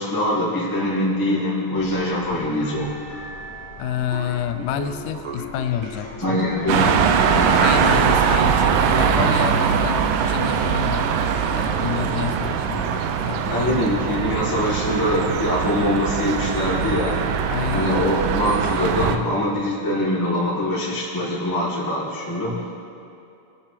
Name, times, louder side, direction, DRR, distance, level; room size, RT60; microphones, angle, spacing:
voice 1, 0.0-3.0 6.2-7.0 7.3-7.6 12.4-12.6 13.5-17.2 17.7-22.6, left 1 dB, 10° left, -7 dB, 1.2 m, -23 dB
sound 1, 1.7-8.6, left 1 dB, 65° left, 1.9 m, -41 dB
voice 2, 3.8-6.4 7.6-11.1 11.5-12.9 13.3-13.8 17.5-18.0, left 9 dB, 85° left, 9 dB, 1.7 m, -28 dB
sound 2, 4.1-8.9, right 2 dB, 50° right, 1.5 m, -38 dB
sound 3, 6.7-19.2, right 7 dB, 80° right, 2.1 m, -21 dB
21.0 x 7.3 x 3.3 m, 2.6 s
omnidirectional pair, 4.1 m